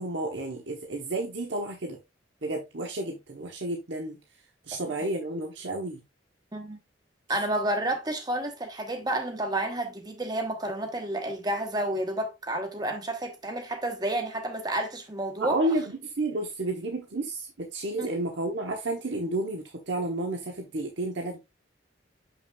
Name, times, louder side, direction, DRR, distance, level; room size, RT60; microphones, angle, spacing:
voice 1, 0.0-2.0 2.4-4.2 4.7-6.0 15.4-21.4, right 2 dB, 75° right, 1.1 m, -31 dB
voice 2, 7.3-15.6 18.0-18.1, right 1 dB, 20° right, 1.1 m, -30 dB
7.1 x 5.9 x 2.3 m
head